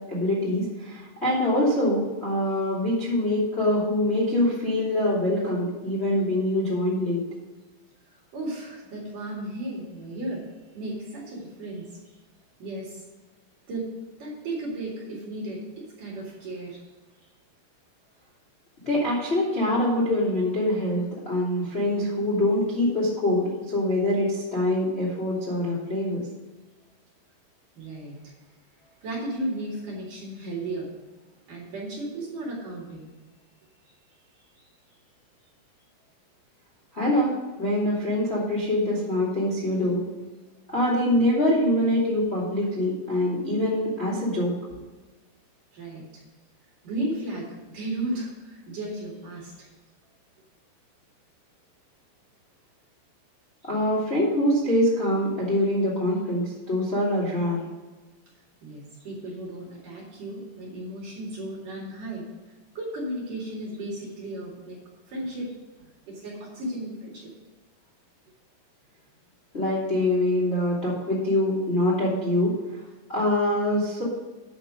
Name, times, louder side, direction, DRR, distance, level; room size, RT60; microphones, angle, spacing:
voice 1, 0.1-7.2 18.8-26.2 36.9-40.0 40.7-44.5 53.6-57.6 69.5-72.6 73.1-74.0, left 1 dB, 25° left, -6 dB, 1.5 m, -24 dB
voice 2, 8.3-12.0 12.6-13.0 13.7-16.8 27.8-28.2 28.8-30.9 31.5-33.1 34.3-34.7 45.7-46.2 46.8-49.7 58.6-62.3 62.7-64.8 65.1-67.3, right 1 dB, 50° right, -4 dB, 3.1 m, -35 dB
9.5 x 6.0 x 6.3 m, 1.3 s
omnidirectional pair, 6.0 m